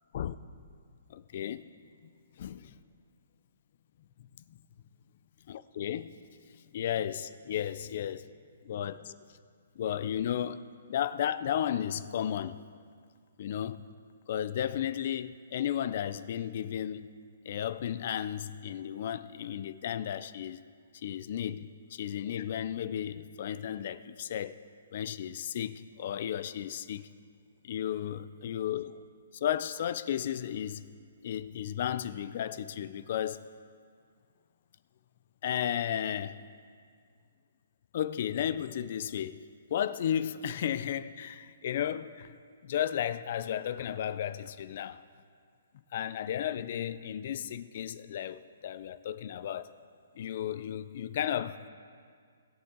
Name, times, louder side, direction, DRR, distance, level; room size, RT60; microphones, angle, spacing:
voice 1, 1.1-1.6 2.4-2.8 5.5-6.1 6.5-8.3 8.6-9.2 9.8-10.6 10.9-12.6 13.4-13.8 14.3-17.1 17.5-20.6 20.9-24.6 24.9-27.1 27.6-29.0 29.3-30.8 31.2-33.5 35.4-36.4 37.9-45.0 45.9-49.7 50.2-51.6, left 10 dB, 45° left, 0.4 m, -34 dB
19.0 x 7.0 x 3.8 m
hypercardioid pair, 165°, 0 cm